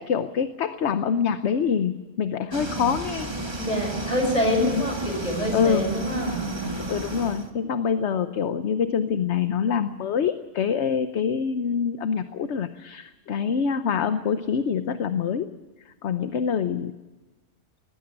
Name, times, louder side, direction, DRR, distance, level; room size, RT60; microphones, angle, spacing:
voice 1, 0.0-3.4 4.6-4.8 5.5-5.9 6.7-15.5 15.9-16.9, left 7 dB, 65° left, 10 dB, 1.1 m, -25 dB
sound 1, 2.5-7.5, right 2 dB, 20° right, 1.6 m, -32 dB
voice 2, 3.6-6.8, equal, 30° left, 2 dB, 6.6 m, -26 dB
19.5 x 15.5 x 9.9 m, 1.2 s
omnidirectional pair, 1.3 m